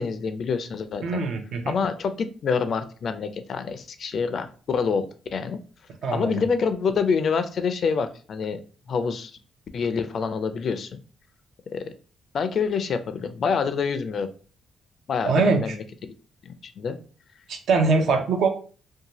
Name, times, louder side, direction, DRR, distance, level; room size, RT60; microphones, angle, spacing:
voice 1, 0.0-1.2 1.7-5.1 5.3-5.6 6.1-8.6 8.9-9.3 9.7-11.0 11.7-11.8 12.3-14.3 15.1-15.8 16.5-17.0, left 5 dB, 55° left, 10 dB, 0.4 m, -26 dB
voice 2, 1.0-1.7 6.0-6.4 15.2-15.8 17.5-18.5, right 4 dB, 70° right, 5 dB, 0.6 m, -22 dB
2.7 x 2.2 x 2.9 m, 0.39 s
cardioid pair, 90°, 0 cm